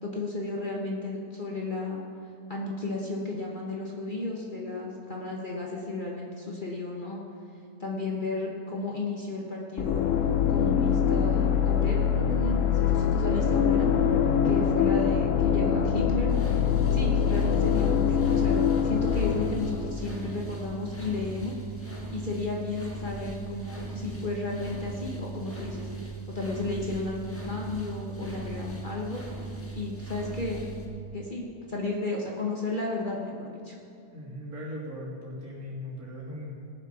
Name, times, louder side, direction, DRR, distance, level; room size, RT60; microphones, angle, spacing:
voice 1, 0.0-2.0 2.5-7.2 7.8-10.1 10.5-13.9 14.4-16.3 16.9-21.5 22.1-29.2 29.7-30.7 31.1-33.8, left 2 dB, 35° left, -2 dB, 1.4 m, -33 dB
sound 1, 9.8-20.6, left 7 dB, 65° left, 0.9 m, -24 dB
voice 2, 14.2-14.6 34.1-36.5, left 1 dB, 65° right, -6 dB, 3.6 m, -38 dB
sound 2, 16.3-30.8, right 3 dB, 10° left, 1.3 m, -39 dB
19.0 x 6.8 x 6.0 m, 2.4 s
omnidirectional pair, 1.7 m